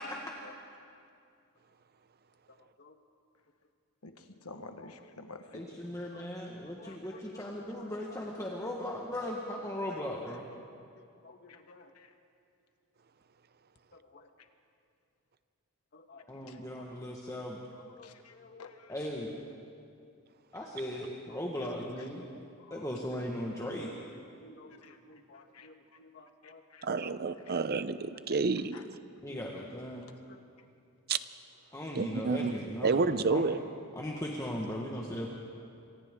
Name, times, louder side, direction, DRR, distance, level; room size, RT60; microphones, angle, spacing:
voice 1, 4.0-5.8 6.8-7.0 11.5-11.6 11.9-12.1 16.5-16.6 18.0-18.3 18.6-18.9 24.8-25.0 25.3-25.7 26.4-26.8 27.5-27.6 28.7-28.8, left 3 dB, 85° left, 7 dB, 1.4 m, -50 dB
voice 2, 5.5-10.4 16.3-17.6 18.9-19.3 20.5-22.4 22.7-23.9 29.2-30.0 31.7-33.4 33.9-35.3, left 1 dB, 15° left, -2 dB, 1.5 m, -38 dB
voice 3, 11.2-11.9 13.9-14.3 15.9-16.2 17.9-18.7 22.7-22.8 24.4-26.6 26.9-27.2 30.0-30.4, left 3 dB, 50° left, 5 dB, 1.5 m, -55 dB
voice 4, 26.8-28.8 31.1-31.2 31.9-32.5 32.8-33.6, right 4 dB, 45° right, 13 dB, 0.7 m, -29 dB
28.0 x 25.0 x 3.7 m, 2.4 s
head